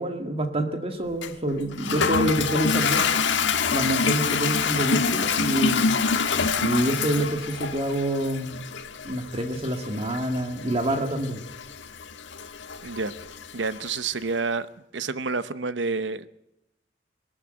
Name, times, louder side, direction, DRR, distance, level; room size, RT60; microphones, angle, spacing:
voice 1, 0.0-3.0 3.7-5.9 6.6-8.6 9.0-11.4, right 1 dB, 30° right, 6 dB, 2.0 m, -27 dB
Toilet flush, 1.2-14.0, left 5 dB, 80° left, 1.5 m, -27 dB
voice 2, 12.8-13.1 13.5-14.7 14.9-16.3, right 4 dB, 75° right, 14 dB, 0.9 m, -28 dB
22.0 x 13.5 x 9.0 m, 0.89 s
head